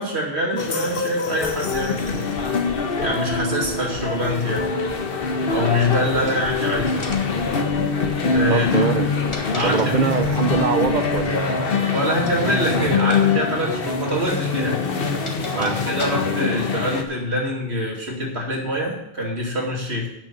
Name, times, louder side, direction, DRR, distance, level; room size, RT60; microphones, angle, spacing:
voice 1, 0.0-2.2 3.0-4.7 5.5-7.1 8.3-8.9 9.5-10.2 11.9-14.8 15.5-20.1, equal, 85° right, -2 dB, 2.9 m, -25 dB
sound 1, 0.6-17.0, left 4 dB, 65° left, 1.2 m, -24 dB
sound 2, 1.4-11.2, left 2 dB, 90° left, 2.6 m, -40 dB
sound 3, 6.2-6.6 7.0-7.4 8.9-10.4 12.2-12.5 13.0-13.2 13.5-13.6 14.6-16.5, left 1 dB, 30° left, 1.5 m, -36 dB
voice 2, 8.5-9.1 9.6-11.9 12.7-12.9 15.5-15.8, right 6 dB, 50° right, 11 dB, 0.7 m, -23 dB
8.7 x 6.7 x 7.7 m, 0.89 s
omnidirectional pair, 1.1 m